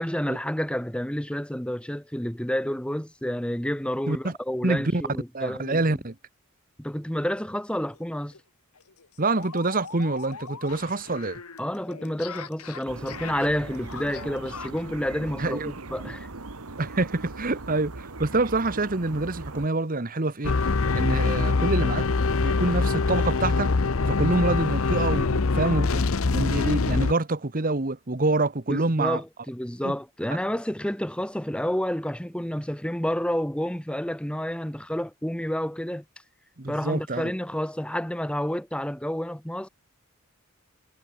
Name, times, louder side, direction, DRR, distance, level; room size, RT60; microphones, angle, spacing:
voice 1, 0.0-6.0 6.8-8.3 11.6-16.3 28.7-36.0 36.7-39.7, equal, 5° left, 1.2 m, -29 dB
voice 2, 4.6-5.0 5.3-6.1 9.2-11.4 15.4-15.8 16.8-20.5 20.9-22.1 22.4-23.7 24.1-26.0 26.3-29.2 29.8-29.9 36.6-37.3, right 2 dB, 40° right, 1.2 m, -26 dB
sound 1, 7.9-8.0 8.3-8.4 8.8-14.9, left 6 dB, 85° left, 2.0 m, -42 dB
sound 2, 12.8-19.7, right 3 dB, 75° right, 1.7 m, -40 dB
sound 3, 20.4-27.1, left 3 dB, 65° left, 0.8 m, -23 dB
head